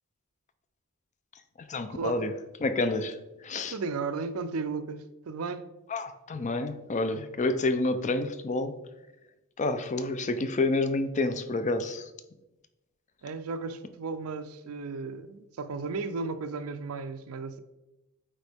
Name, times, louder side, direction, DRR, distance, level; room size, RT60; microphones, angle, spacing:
voice 1, 1.7-2.3 2.6-3.2 3.4-3.7 5.9-8.7 9.6-12.1, left 2 dB, 35° left, 0.5 m, -28 dB
voice 2, 3.7-5.7 13.2-17.6, right 4 dB, 75° right, 0.5 m, -34 dB
9.1 x 3.8 x 3.5 m
head